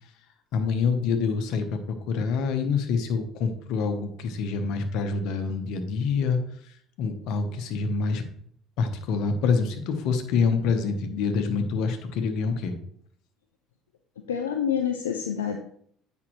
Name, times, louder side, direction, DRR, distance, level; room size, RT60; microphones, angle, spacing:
voice 1, 0.5-6.4 7.0-8.2 8.8-12.7, left 5 dB, 65° left, 7 dB, 1.0 m, -26 dB
voice 2, 14.3-15.6, left 8 dB, 85° left, 5 dB, 0.5 m, -27 dB
8.5 x 5.5 x 3.1 m, 0.65 s
hypercardioid pair, 60°, 0 cm